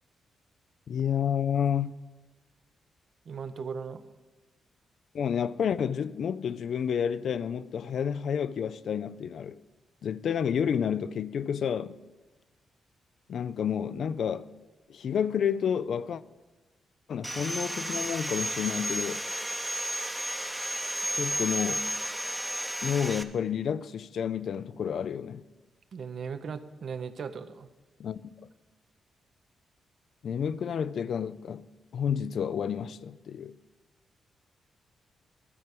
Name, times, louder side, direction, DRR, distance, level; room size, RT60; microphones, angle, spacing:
voice 1, 0.9-1.9 5.1-9.6 10.0-12.0 13.3-14.5 14.9-16.2 17.1-19.2 21.1-21.9 22.8-25.4 28.0-28.3 30.2-31.6 31.9-33.6, left 8 dB, 70° left, 0.3 m, -30 dB
voice 2, 3.3-4.0 25.9-27.7, right 6 dB, 65° right, 0.6 m, -37 dB
Sawing, 17.2-23.2, right 1 dB, 5° right, 0.7 m, -32 dB
12.5 x 4.5 x 7.8 m
cardioid pair, 65°, 0 cm